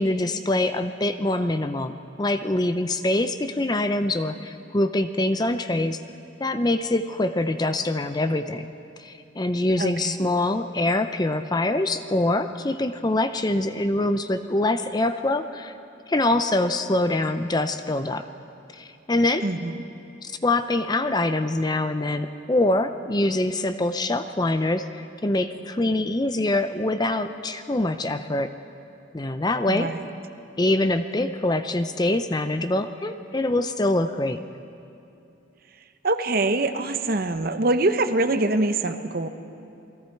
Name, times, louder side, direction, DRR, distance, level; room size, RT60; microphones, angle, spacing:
voice 1, 0.0-6.0 6.4-8.7 9.0-15.8 16.1-18.3 18.7-19.4 20.2-28.5 29.1-29.9 30.6-34.4, left 2 dB, 20° left, 9 dB, 0.5 m, -24 dB
voice 2, 9.8-10.3 19.4-19.8 29.7-30.0 36.0-39.3, right 2 dB, 45° right, 9 dB, 0.9 m, -24 dB
28.5 x 20.5 x 4.6 m, 2.7 s
head